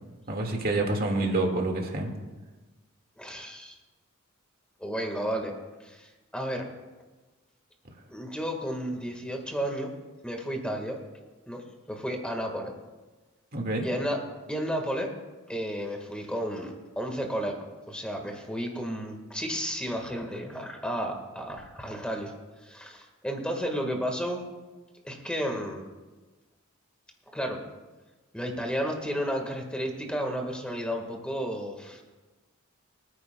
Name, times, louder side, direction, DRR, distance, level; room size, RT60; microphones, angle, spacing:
voice 1, 0.3-2.1 13.5-13.8, right 2 dB, 45° right, 1 dB, 1.9 m, -27 dB
voice 2, 3.2-3.8 4.8-5.5 5.8-6.6 8.1-9.9 10.2-11.0 11.5-12.7 13.8-14.2 14.5-15.1 15.5-22.3 22.6-24.4 25.0-25.9 27.3-27.6 28.3-32.0, equal, 5° left, 2 dB, 1.6 m, -32 dB
26.0 x 9.6 x 2.3 m, 1.2 s
head